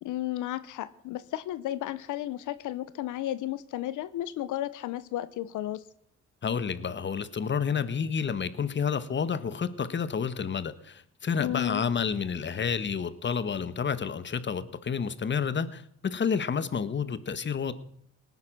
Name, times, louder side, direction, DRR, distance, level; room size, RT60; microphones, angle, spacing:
voice 1, 0.0-5.8 11.4-11.8, left 14 dB, 85° left, 15 dB, 0.8 m, -33 dB
voice 2, 6.4-17.7, left 6 dB, 40° left, 15 dB, 1.2 m, -30 dB
18.5 x 9.6 x 6.1 m, 0.68 s
cardioid pair, 90°, 30 cm